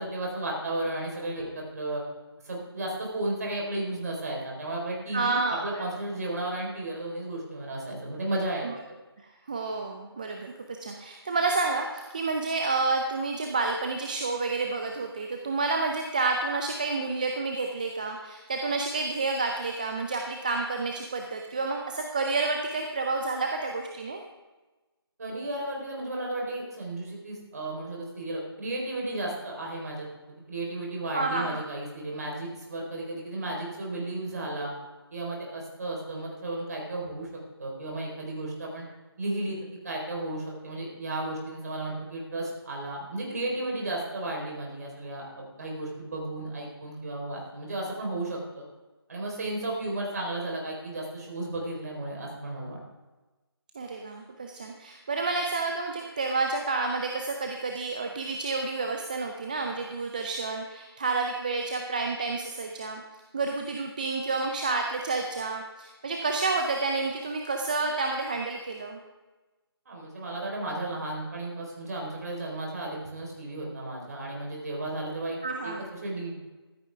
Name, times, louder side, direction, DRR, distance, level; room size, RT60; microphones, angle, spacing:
voice 1, 0.0-2.0 2.4-8.7 25.2-34.7 35.1-37.3 37.6-38.8 39.2-39.6 39.8-48.7 49.1-52.8 69.9-76.3, right 2 dB, 40° right, -1 dB, 4.0 m, -34 dB
voice 2, 5.1-5.9 9.5-24.2 31.1-31.6 53.7-63.0 63.3-69.0 75.4-75.8, right 3 dB, 20° right, 3 dB, 0.5 m, -29 dB
14.0 x 13.0 x 3.5 m, 1.2 s
figure-of-eight pair, 160°, 13 cm